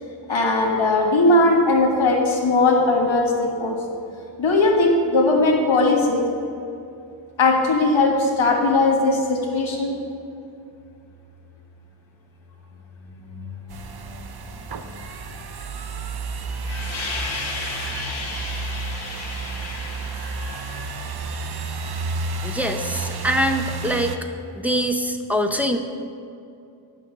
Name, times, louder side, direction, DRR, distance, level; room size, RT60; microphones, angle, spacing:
voice 1, 0.3-3.8 4.4-6.2 7.4-9.9 13.1-13.5 16.6-20.8, left 2 dB, 70° left, -1 dB, 1.6 m, -20 dB
sound 1, 13.7-24.2, right 4 dB, 50° right, 0.6 m, -31 dB
voice 2, 22.4-24.1 24.6-25.8, equal, 5° right, 5 dB, 0.5 m, -23 dB
9.1 x 6.1 x 7.2 m, 2.6 s
wide cardioid pair, 165°, 49 cm